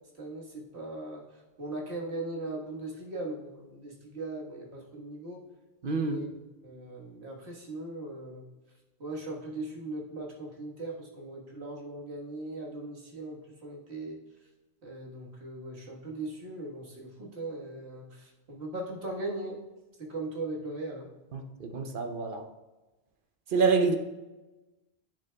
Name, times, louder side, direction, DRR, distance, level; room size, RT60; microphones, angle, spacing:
voice 1, 0.2-1.2 1.6-5.4 6.0-6.3 6.6-8.4 9.0-14.2 14.8-19.6 20.1-21.1, right 2 dB, 85° right, -1 dB, 1.7 m, -39 dB
voice 2, 5.8-6.2 21.3-22.4 23.5-24.0, right 4 dB, 60° right, 5 dB, 0.8 m, -27 dB
10.0 x 6.7 x 2.2 m, 1.1 s
omnidirectional pair, 1.1 m